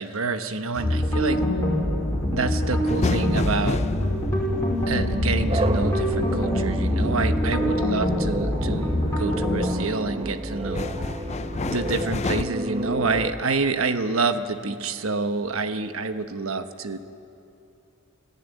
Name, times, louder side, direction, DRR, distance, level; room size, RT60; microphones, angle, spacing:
voice 1, 0.0-1.4 2.3-3.8 4.9-8.9 9.2-10.9 11.7-17.0, right 3 dB, 70° right, 9 dB, 1.1 m, -27 dB
sound 1, 0.8-9.7, left 1 dB, 15° left, 5.2 m, -24 dB
sound 2, 2.9-6.7 9.2-9.7 10.1-12.4, left 3 dB, 30° left, 0.5 m, -31 dB
sound 3, 5.5-13.3, right 1 dB, 25° right, 1.0 m, -31 dB
26.0 x 15.0 x 9.2 m, 2.7 s
head